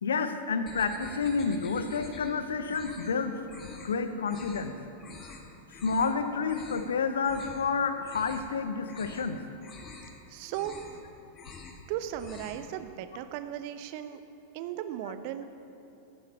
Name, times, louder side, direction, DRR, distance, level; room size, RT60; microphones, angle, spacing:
voice 1, 0.0-3.4 3.6-4.7 5.8-9.4, left 5 dB, 65° left, 9 dB, 1.0 m, -29 dB
sound 1, 0.7-2.3 2.6-3.1 3.5-3.9 4.2-4.6 5.0-5.4 5.7-6.1 6.4-6.9 7.2-7.6 7.9-8.5 8.8-9.3 9.6-10.1 10.5-11.0 11.3-11.8 12.1-12.7, left 4 dB, 25° left, 1.9 m, -47 dB
voice 2, 10.3-10.8 11.9-14.2 14.5-15.4, right 11 dB, 45° right, 10 dB, 0.9 m, -36 dB
16.0 x 15.0 x 4.3 m, 2.8 s
figure-of-eight pair, 90°, 0 cm